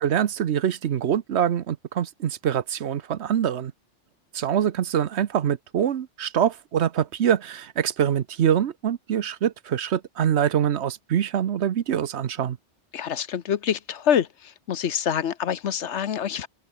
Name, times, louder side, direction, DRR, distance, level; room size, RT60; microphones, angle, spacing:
voice 1, 0.0-3.7 4.3-12.6, right 9 dB, 70° right, 1.1 m, -24 dB
voice 2, 12.9-14.3 14.7-16.5, left 8 dB, 75° left, 1.2 m, -25 dB
open air
omnidirectional pair, 1.2 m